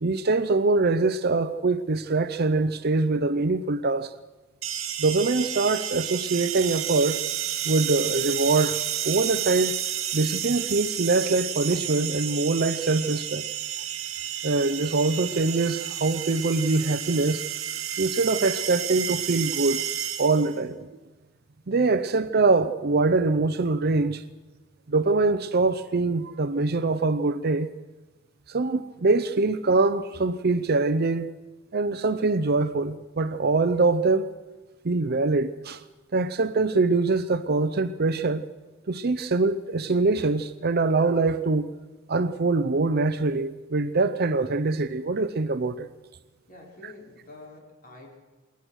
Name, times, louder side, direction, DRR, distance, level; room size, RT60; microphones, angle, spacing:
voice 1, 0.0-4.1 5.0-7.2 7.6-8.8 9.0-9.8 10.1-13.4 14.4-17.5 18.0-19.8 20.2-20.9 21.7-24.2 24.9-27.7 28.5-31.3 31.7-34.3 34.8-35.8 36.1-38.5 38.9-41.7 42.1-45.9, right 3 dB, 50° right, 0.7 m, -23 dB
sound 1, 4.6-20.6, right 10 dB, 85° right, 1.9 m, -31 dB
voice 2, 46.5-48.1, left 2 dB, 45° left, 5.2 m, -47 dB
22.0 x 19.0 x 6.4 m
head